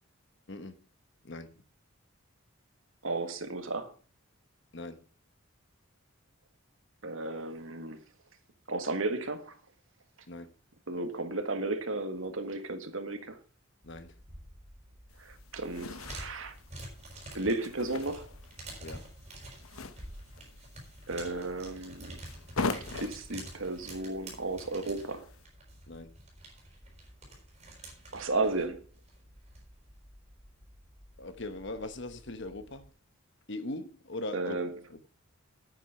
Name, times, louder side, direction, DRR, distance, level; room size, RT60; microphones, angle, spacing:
voice 1, 0.5-0.8 1.2-1.6 4.7-5.1 10.3-10.5 13.8-14.2 18.8-19.1 25.9-26.2 31.2-32.9 33.5-34.6 34.9-35.0, left 2 dB, 55° left, 1.2 m, -40 dB
voice 2, 3.0-3.9 7.0-8.0 8.7-9.5 10.9-13.4 15.2-16.5 17.3-18.3 21.1-22.2 22.9-25.3 28.1-28.8 34.3-34.7, right 2 dB, 70° right, 1.7 m, -34 dB
sound 1, 13.8-32.9, right 1 dB, 30° right, 4.9 m, -49 dB
sound 2, 15.1-25.4, left 3 dB, 85° left, 1.0 m, -42 dB
9.9 x 9.0 x 5.7 m
head